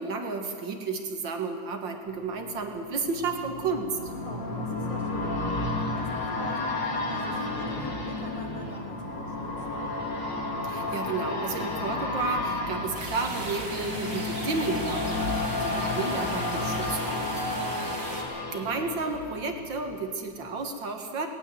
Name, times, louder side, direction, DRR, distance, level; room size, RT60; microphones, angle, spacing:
voice 1, 0.0-4.0 10.6-17.5 18.3-21.3, right 4 dB, 75° right, 4 dB, 2.3 m, -32 dB
sound 1, 2.2-20.0 20.3-20.4, left 2 dB, 65° left, 2.9 m, -32 dB
sound 2, 4.0-17.9, right 1 dB, 30° left, 4.6 m, -43 dB
voice 2, 4.2-9.5 9.8-10.1, equal, 15° left, -2 dB, 3.0 m, -44 dB
sound 3, 12.9-18.2, right 1 dB, 30° right, 3.4 m, -37 dB
19.0 x 18.5 x 7.7 m, 2.2 s
omnidirectional pair, 2.1 m